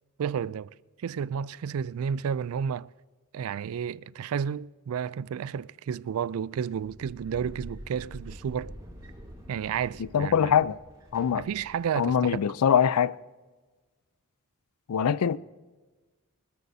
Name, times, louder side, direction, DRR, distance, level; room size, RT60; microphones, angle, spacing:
voice 1, 0.2-0.7 1.0-2.9 3.3-8.7 9.5-10.5 11.3-12.4, right 7 dB, 70° right, 0.3 m, -31 dB
sound 1, 6.7-12.2, equal, 15° right, 3.7 m, -46 dB
voice 2, 10.1-10.8 11.1-11.4 12.0-13.1 14.9-15.4, left 8 dB, 90° left, 0.4 m, -23 dB
24.5 x 13.0 x 2.7 m
head